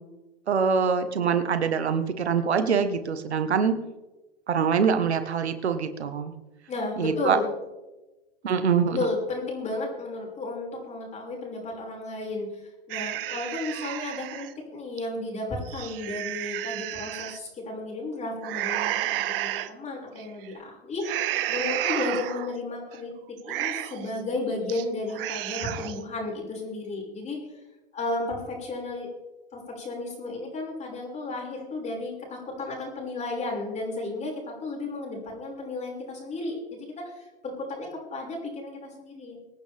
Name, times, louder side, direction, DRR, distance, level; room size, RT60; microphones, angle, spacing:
voice 1, 0.5-3.7 4.5-6.3 7.0-7.4 8.4-9.0, right 6 dB, 85° right, 9 dB, 1.6 m, -24 dB
voice 2, 6.7-7.5 8.9-27.4 27.9-29.1 29.5-37.2 37.6-39.4, left 2 dB, 20° left, -1 dB, 6.0 m, -33 dB
sound 1, 12.9-14.5 15.0-15.1 15.6-17.4 18.4-19.7 20.2-20.5 21.0-22.5 22.9-23.0 23.4-24.1 24.5-24.8 25.1-26.0, right 14 dB, 60° right, 1.1 m, -31 dB
24.5 x 9.3 x 3.6 m, 1.1 s
hypercardioid pair, 115°, 32 cm